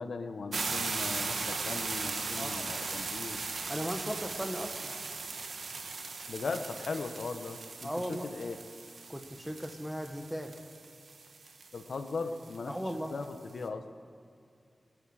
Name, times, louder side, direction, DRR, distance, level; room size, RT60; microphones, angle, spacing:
voice 1, 0.0-3.4 6.3-8.6 11.7-12.7 13.1-13.8, left 4 dB, 75° left, 7 dB, 1.0 m, -38 dB
sound 1, 0.5-13.2, right 4 dB, 75° right, 1.0 m, -38 dB
voice 2, 3.7-4.9 7.8-8.3 9.1-10.5 12.7-13.1, equal, 5° right, 4 dB, 1.3 m, -37 dB
23.5 x 9.5 x 4.9 m, 2.5 s
wide cardioid pair, 125°, 0 cm